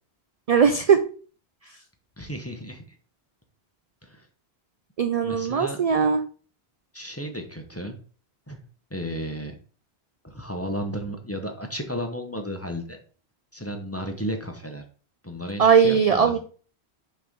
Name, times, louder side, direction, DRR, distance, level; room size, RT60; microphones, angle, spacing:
voice 1, 0.5-1.0 5.0-6.2 15.6-16.4, right 6 dB, 55° right, 8 dB, 0.4 m, -19 dB
voice 2, 2.2-3.0 4.0-4.3 5.2-5.8 6.9-8.0 8.5-8.6 8.9-9.5 10.2-13.0 13.5-14.8 15.2-16.4, equal, 15° left, 4 dB, 0.8 m, -33 dB
6.0 x 3.2 x 5.2 m, 0.40 s
omnidirectional pair, 1.1 m